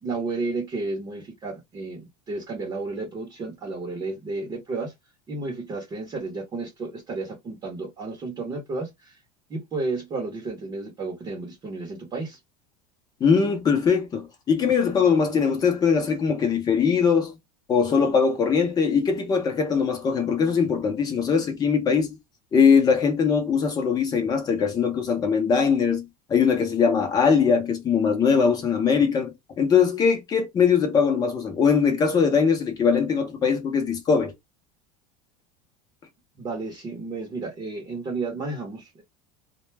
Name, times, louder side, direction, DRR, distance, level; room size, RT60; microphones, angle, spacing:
voice 1, 0.0-4.9 5.3-9.2 9.5-12.4 36.4-39.0, right 3 dB, 20° right, 0.8 m, -32 dB
voice 2, 13.2-17.3 17.7-22.1 22.5-34.3, left 6 dB, 20° left, 0.7 m, -21 dB
2.2 x 2.1 x 3.2 m
supercardioid pair, 155°, 18 cm